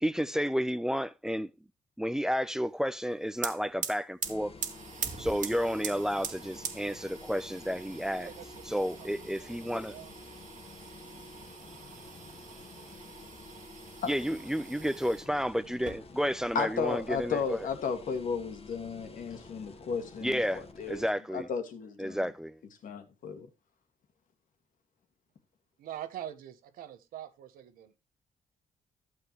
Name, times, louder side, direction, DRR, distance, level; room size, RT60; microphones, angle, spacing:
voice 1, 0.0-1.5 2.0-4.5 5.2-8.3 8.7-9.9 14.1-17.6 20.2-21.5 22.0-22.6, equal, 5° right, 0.7 m, -31 dB
sound 1, 3.0-3.1 3.3-15.3 15.7-16.5 16.8-17.8, right 7 dB, 65° right, 1.8 m, -43 dB
sound 2, 4.2-21.1, left 3 dB, 45° left, 1.7 m, -50 dB
voice 2, 9.4-10.1 25.8-28.0, right 11 dB, 85° right, 1.2 m, -44 dB
voice 3, 16.5-21.0 21.3-22.3 22.8-23.5, left 5 dB, 70° left, 2.0 m, -34 dB
12.5 x 7.7 x 3.1 m
cardioid pair, 75°, 14 cm